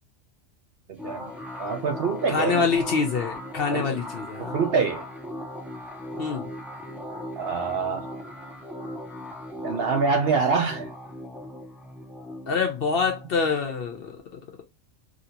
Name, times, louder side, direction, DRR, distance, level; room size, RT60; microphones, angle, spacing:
sound 1, 1.0-14.2, left 1 dB, ahead, 0.3 m, -38 dB
voice 1, 1.6-2.7 3.7-4.0 4.5-5.0 7.4-8.1 9.6-10.9, right 5 dB, 60° right, 0.7 m, -25 dB
voice 2, 2.3-4.6 6.2-6.5 12.5-14.4, left 5 dB, 55° left, 0.7 m, -26 dB
2.9 x 2.7 x 2.7 m
omnidirectional pair, 1.4 m